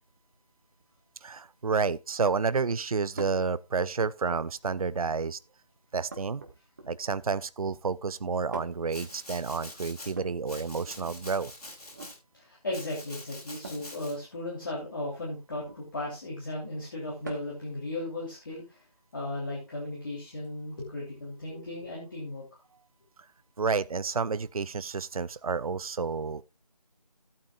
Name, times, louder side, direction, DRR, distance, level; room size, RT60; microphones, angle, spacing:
voice 1, 1.2-5.4 5.9-6.4 6.9-11.5 23.6-26.4, right 5 dB, 65° right, 0.4 m, -30 dB
sound 1, 3.2-3.5 4.6-5.1 6.1-7.2 8.5-9.0 10.1-11.2 11.8-12.2 13.6-13.9 15.5-15.9 17.2-17.7 19.1-19.2 20.4-20.5, right 2 dB, 25° right, 1.5 m, -44 dB
Domestic sounds home sounds, 8.9-10.1 10.5-12.2 12.7-14.1, left 1 dB, 70° left, 5.4 m, -45 dB
voice 2, 12.3-18.8 19.1-22.6, left 1 dB, 30° left, 3.1 m, -36 dB
15.0 x 8.6 x 2.3 m
figure-of-eight pair, 165°, 20 cm